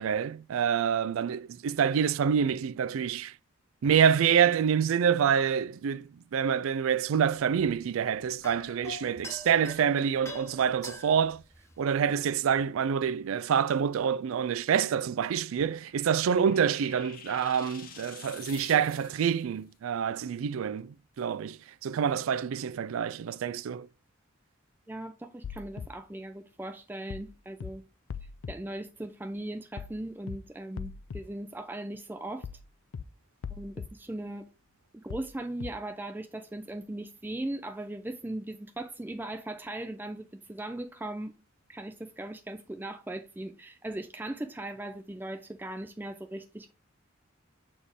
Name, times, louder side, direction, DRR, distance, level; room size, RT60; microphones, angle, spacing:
voice 1, 0.0-3.3 3.8-11.4 11.8-23.9, right 7 dB, 85° right, 0.3 m, -27 dB
sound 1, 7.2-12.3, left 1 dB, 15° left, 0.9 m, -46 dB
sound 2, 15.3-19.4, left 8 dB, 45° left, 1.0 m, -49 dB
voice 2, 24.9-27.8 28.5-32.5 33.5-34.4 34.9-41.4 41.7-46.7, right 1 dB, 10° right, 0.3 m, -38 dB
sound 3, 25.4-25.9 27.1-27.3 27.6-27.7 28.1-28.5 29.8-30.0 30.3-30.4 30.8-31.2 32.4-32.6 32.9-33.0 33.4-33.9 35.1-35.3 35.6-35.7, left 6 dB, 80° left, 0.4 m, -39 dB
7.2 x 4.2 x 3.4 m
head